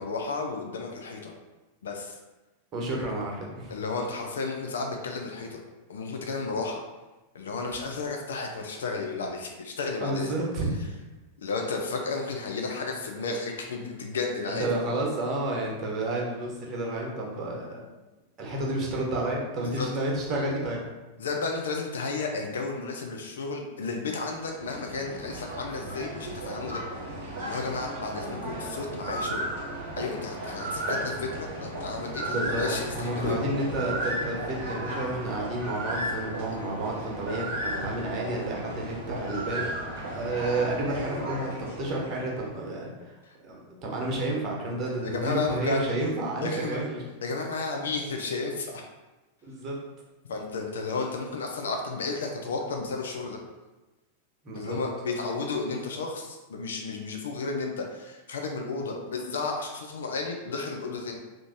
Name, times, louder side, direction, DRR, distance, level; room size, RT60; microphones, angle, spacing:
voice 1, 0.0-1.3 1.8-2.2 3.7-5.6 5.9-6.8 7.3-10.4 11.4-14.7 19.8-19.9 21.2-26.8 27.4-29.5 30.0-33.4 43.2-43.4 44.0-44.1 45.0-45.8 46.4-46.8 47.2-48.8 50.3-53.4 54.6-61.2, left 4 dB, 65° left, 2 dB, 0.4 m, -33 dB
voice 2, 2.7-3.8 10.0-10.7 14.5-17.9 18.4-20.8 32.2-32.6 32.9-39.7 40.1-43.2 43.4-47.0 49.4-49.7 54.4-54.8, right 2 dB, 30° right, -2 dB, 0.9 m, -31 dB
sound 1, 24.2-42.6, right 1 dB, 55° right, 0.8 m, -35 dB
2.8 x 2.5 x 3.5 m, 1.1 s
figure-of-eight pair, 90°, 0 cm